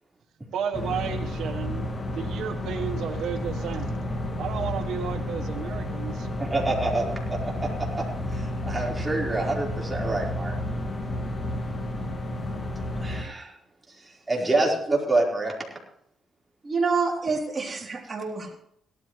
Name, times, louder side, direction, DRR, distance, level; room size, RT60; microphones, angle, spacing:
voice 1, 0.5-1.9 2.1-4.0 4.4-6.3, right 7 dB, 80° right, 5 dB, 1.3 m, -32 dB
sound 1, 0.7-13.2, left 1 dB, 35° left, 2.4 m, -31 dB
voice 2, 6.4-7.0 7.3-8.0 8.3-10.5 13.0-13.5 14.3-15.5, right 2 dB, 15° right, -3 dB, 4.6 m, -27 dB
voice 3, 16.6-18.5, right 4 dB, 35° right, 0 dB, 3.5 m, -27 dB
17.5 x 13.0 x 3.3 m, 0.71 s
cardioid pair, 95°, 0 cm